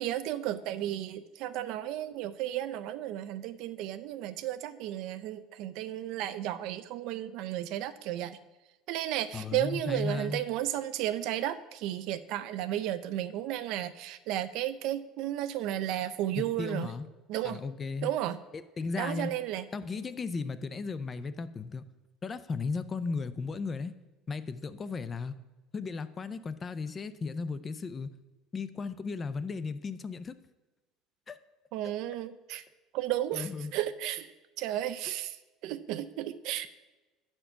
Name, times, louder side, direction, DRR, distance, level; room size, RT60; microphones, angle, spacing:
voice 1, 0.0-8.4 8.9-16.9 17.3-17.6 18.0-18.4 19.0-19.6 31.7-32.6 32.9-34.3 34.6-35.4 35.6-36.7, right 12 dB, 60° right, 13 dB, 0.4 m, -33 dB
voice 2, 9.3-10.4 16.4-17.1 17.4-18.1 18.5-19.3 19.7-21.9 22.2-23.9 24.3-25.4 25.7-28.1 28.5-30.4 31.3-31.4 33.3-33.7, left 4 dB, 20° left, 13 dB, 0.3 m, -35 dB
9.0 x 4.3 x 5.6 m, 1.1 s
cardioid pair, 160°, 0 cm